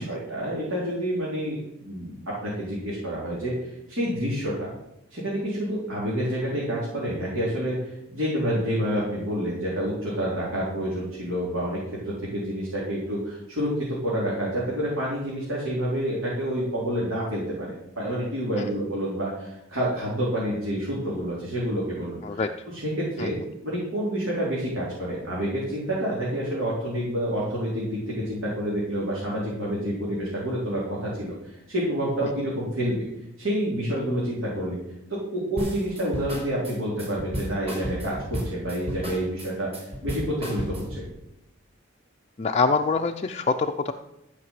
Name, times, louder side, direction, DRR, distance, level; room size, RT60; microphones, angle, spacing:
voice 1, 0.0-2.1 2.4-4.7 5.1-22.4 22.7-23.4 23.6-33.0 33.4-34.8 35.1-41.0, equal, 70° right, -7 dB, 4.1 m, -28 dB
sound 1, 35.6-41.1, equal, 30° right, 4.9 m, -33 dB
voice 2, 42.4-43.9, left 4 dB, 30° left, 4 dB, 0.5 m, -25 dB
14.0 x 6.0 x 7.5 m, 0.87 s
head